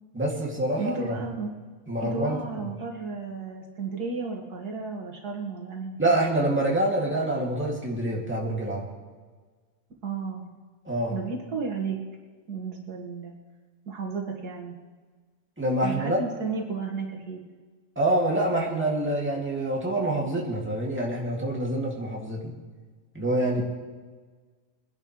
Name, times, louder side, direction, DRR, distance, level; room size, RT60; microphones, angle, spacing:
voice 1, 0.1-1.2 1.9-2.4 6.0-8.9 10.8-11.2 15.6-16.2 18.0-22.5 23.1-23.6, right 1 dB, 5° right, -3 dB, 2.4 m, -26 dB
voice 2, 0.8-1.5 2.0-6.0 10.0-10.5 11.1-12.0 12.5-13.3 13.9-14.8 15.8-17.4, right 4 dB, 80° right, 0 dB, 2.5 m, -33 dB
23.0 x 10.5 x 3.3 m, 1.4 s
omnidirectional pair, 1.6 m